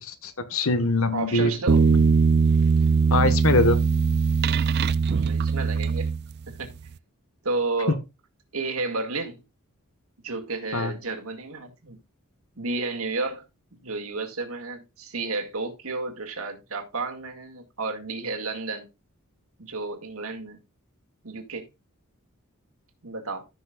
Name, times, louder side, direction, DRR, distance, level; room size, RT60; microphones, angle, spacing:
voice 1, 0.2-1.5 3.1-3.8 10.7-10.9, left 2 dB, 70° left, 1.4 m, -22 dB
voice 2, 1.1-1.9 5.0-6.1 6.5-6.9 7.4-8.0 8.5-9.4 10.2-12.0 12.6-13.4 13.8-18.9 19.6-20.6 21.2-21.7 23.0-23.4, right 3 dB, 75° right, 2.2 m, -32 dB
sound 1, 1.7-6.6, right 5 dB, 50° right, 0.4 m, -21 dB
14.5 x 6.3 x 2.4 m
head